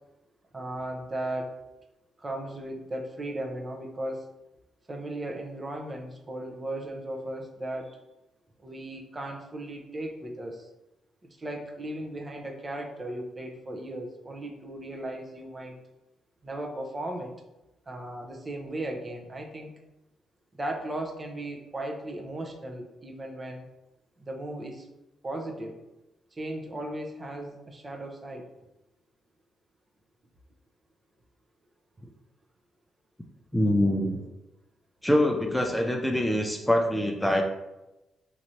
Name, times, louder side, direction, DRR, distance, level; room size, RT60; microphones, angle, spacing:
voice 1, 0.5-1.6 2.2-4.2 4.9-8.0 8.6-10.7 11.4-15.8 16.4-17.3 17.9-19.7 20.5-23.7 24.2-24.9 25.2-25.8 26.4-28.5, right 1 dB, 35° right, 2 dB, 0.9 m, -36 dB
voice 2, 33.5-34.3 35.0-37.4, left 1 dB, 5° left, 2 dB, 0.6 m, -24 dB
5.0 x 2.9 x 2.7 m, 0.96 s
hypercardioid pair, 45°, 0 cm